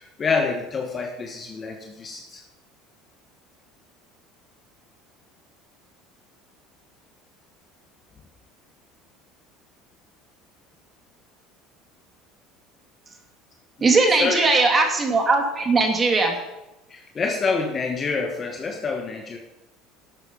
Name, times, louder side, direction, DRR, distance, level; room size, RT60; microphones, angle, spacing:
voice 1, 0.0-2.4 13.8-14.5 16.9-19.4, left 4 dB, 35° left, 3 dB, 1.6 m, -27 dB
voice 2, 13.8-16.4, right 3 dB, 30° right, 4 dB, 2.8 m, -19 dB
12.0 x 8.6 x 5.6 m, 0.97 s
supercardioid pair, 90°, 0 cm